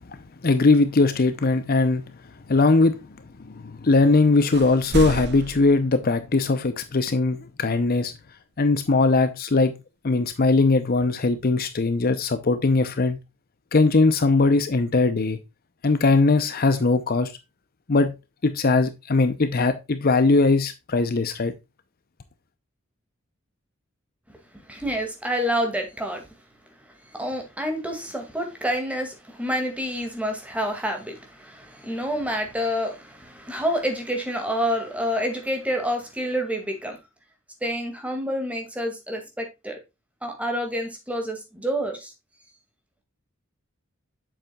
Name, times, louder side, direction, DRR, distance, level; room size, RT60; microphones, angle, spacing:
voice 1, 0.4-2.0 2.5-3.0 3.5-8.1 8.6-9.7 10.0-13.2 13.7-15.4 15.8-17.3 17.9-18.1 18.4-21.5, left 3 dB, 45° left, 0.7 m, -20 dB
sound 1, 4.1-4.2 4.5-6.6, right 3 dB, 55° right, 0.8 m, -32 dB
voice 2, 24.7-26.3 27.1-37.0 37.6-39.8 40.2-42.1, equal, 5° right, 2.1 m, -28 dB
8.1 x 7.3 x 2.3 m
head